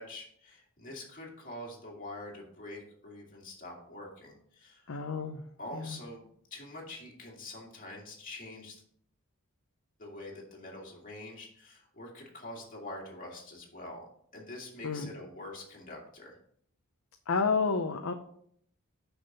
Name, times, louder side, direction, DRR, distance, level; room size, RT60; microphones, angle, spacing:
voice 1, 0.0-4.9 5.6-8.8 10.0-14.0 14.3-16.4, left 1 dB, 40° left, -2 dB, 2.2 m, -45 dB
voice 2, 4.9-5.4 5.8-5.9 14.8-15.1 17.3-18.1, left 4 dB, 70° left, 5 dB, 0.7 m, -30 dB
6.7 x 6.0 x 5.4 m, 0.65 s
head